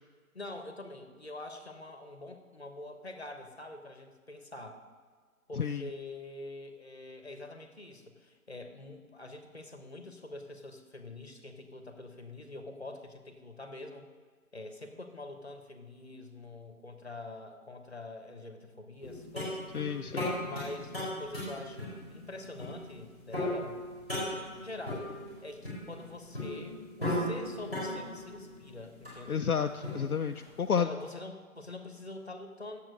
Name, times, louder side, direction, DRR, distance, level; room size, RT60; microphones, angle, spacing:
voice 1, 0.3-4.8 5.5-14.1 14.5-19.6 20.1-23.8 24.3-29.5 30.8-32.8, left 2 dB, 45° left, 6 dB, 1.2 m, -45 dB
voice 2, 5.6-5.9 19.7-20.3 29.3-30.9, left 7 dB, 75° left, 6 dB, 0.6 m, -31 dB
sound 1, 19.0-30.6, left 1 dB, 5° right, 2.9 m, -37 dB
8.7 x 7.5 x 6.4 m, 1.5 s
figure-of-eight pair, 175°, 44 cm